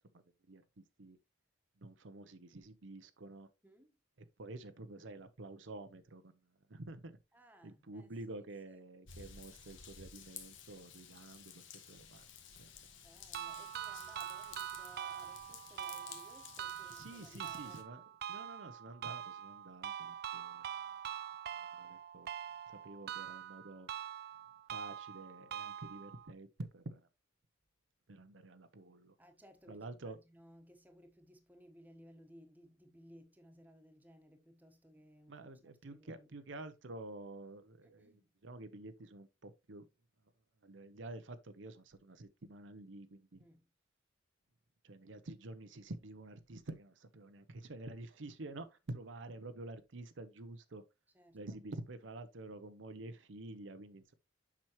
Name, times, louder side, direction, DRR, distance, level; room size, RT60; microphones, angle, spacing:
voice 1, 0.5-1.2 1.8-3.5 4.2-6.4 6.7-7.1 7.6-11.6 11.9-12.3 16.9-18.0 18.3-20.6 21.7-22.3 22.7-23.9 24.7-27.1 28.1-29.1 29.7-30.2 35.3-39.9 40.6-43.5 44.8-50.8 51.3-54.1, right 2 dB, 70° right, 0.7 m, -49 dB
voice 2, 3.6-4.0 7.3-8.4 13.0-17.8 29.2-36.3 38.0-38.3 43.4-43.7 51.1-51.6, equal, 10° right, 1.2 m, -61 dB
Raindrop / Vehicle horn car horn honking / Trickle dribble, 9.1-17.8, left 7 dB, 75° left, 1.4 m, -54 dB
sound 1, 13.3-26.3, right 9 dB, 55° right, 0.4 m, -44 dB
7.4 x 6.1 x 3.0 m
head